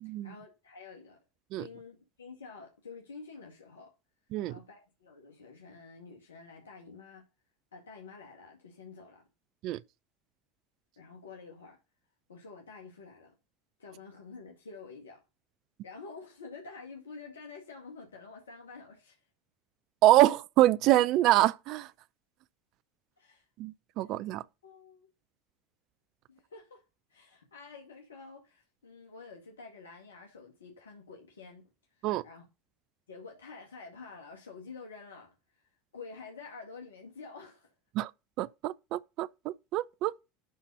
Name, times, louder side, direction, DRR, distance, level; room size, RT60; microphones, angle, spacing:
voice 1, 0.0-1.2 1.5-3.9 4.5-7.2 7.7-9.2 11.0-11.8 12.3-13.3 13.8-15.2 15.8-19.2 23.2-23.4 24.0-24.2 24.6-25.1 26.3-26.8 27.1-31.7 31.9-32.5 33.1-35.3 35.9-37.7, left 4 dB, 85° left, 2.1 m, -49 dB
voice 2, 20.0-21.9 23.6-24.4 32.0-32.2 38.0-38.1 38.4-40.3, right 15 dB, 55° right, 0.5 m, -25 dB
12.0 x 4.1 x 5.4 m
hypercardioid pair, 80°, 0 cm